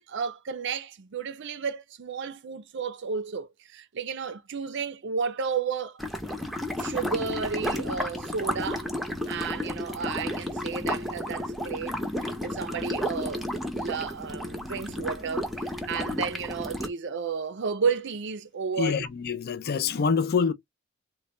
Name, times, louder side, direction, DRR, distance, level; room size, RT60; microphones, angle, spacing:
voice 1, 0.0-6.0 6.8-8.9 9.3-19.0, right 5 dB, 55° right, 0.5 m, -32 dB
sound 1, 6.0-16.9, left 1 dB, ahead, 0.6 m, -32 dB
voice 2, 18.8-20.5, left 5 dB, 50° left, 0.4 m, -26 dB
3.8 x 2.2 x 3.2 m
head